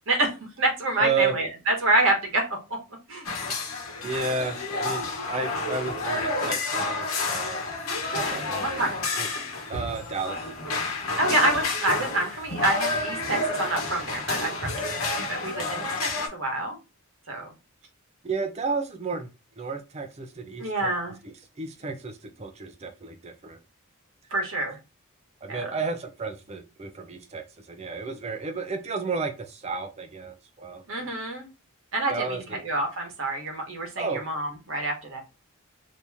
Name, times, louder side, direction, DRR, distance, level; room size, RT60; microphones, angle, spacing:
voice 1, 0.1-2.8 3.1-3.3 7.8-8.9 11.2-16.8 17.3-17.5 20.6-21.1 24.3-24.8 25.5-25.7 30.9-31.5 31.9-35.2, right 2 dB, 60° right, 2 dB, 1.1 m, -27 dB
voice 2, 1.0-1.4 4.0-7.6 8.3-8.9 9.2-9.3 9.7-10.5 18.2-19.3 19.6-20.9 21.2-23.6 25.4-30.8 32.1-32.6 34.0-34.2, right 4 dB, 30° right, 6 dB, 0.4 m, -32 dB
sound 1, 3.2-16.3, left 3 dB, 75° left, 1.0 m, -30 dB
2.9 x 2.7 x 3.4 m, 0.28 s
head